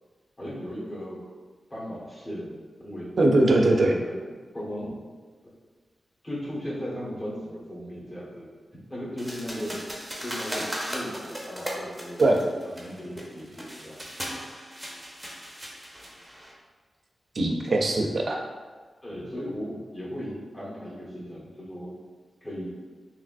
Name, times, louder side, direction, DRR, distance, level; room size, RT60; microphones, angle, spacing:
voice 1, 0.4-1.2 1.7-3.1 3.8-4.2 4.5-4.9 6.2-8.5 8.9-9.8 10.2-12.3 12.6-14.0 19.0-22.0 22.4-22.7, equal, 30° left, -7 dB, 1.4 m, -36 dB
voice 2, 3.2-3.9 12.2-12.4 17.4-18.4, right 2 dB, 60° right, 2 dB, 0.4 m, -21 dB
sound 1, 9.2-16.5, equal, 5° right, 0.7 m, -37 dB
3.3 x 2.8 x 2.5 m, 1.4 s
cardioid pair, 50°, 0 cm